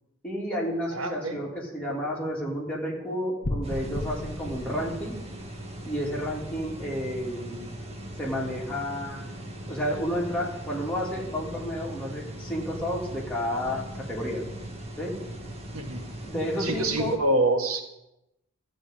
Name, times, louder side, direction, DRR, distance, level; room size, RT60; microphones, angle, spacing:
voice 1, 0.2-5.2 5.8-7.6 8.2-9.3 9.7-14.5 15.0-15.1 16.2-17.1, equal, 5° left, -5 dB, 3.1 m, -31 dB
voice 2, 0.9-1.4 15.7-16.0 16.6-17.8, right 2 dB, 90° right, 5 dB, 1.6 m, -26 dB
sound 1, 3.4-5.5, left 1 dB, 40° left, 0.8 m, -34 dB
sound 2, 3.6-17.2, right 1 dB, 30° right, 1.5 m, -39 dB
14.0 x 5.2 x 9.0 m, 0.88 s
head